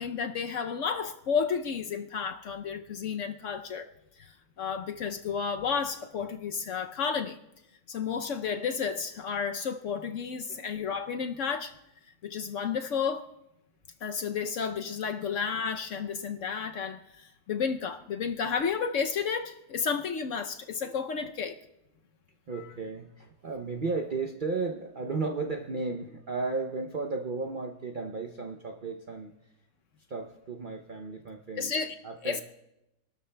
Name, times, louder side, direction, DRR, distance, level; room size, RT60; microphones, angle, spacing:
voice 1, 0.0-3.9 4.2-4.3 4.6-7.4 7.9-11.7 12.2-13.3 14.0-21.6 31.6-31.9 32.2-32.4, left 6 dB, 65° left, 0.9 m, -32 dB
voice 2, 22.5-29.3 30.1-31.7 32.0-32.4, right 3 dB, 55° right, 0.5 m, -34 dB
26.5 x 12.5 x 2.2 m
omnidirectional pair, 1.6 m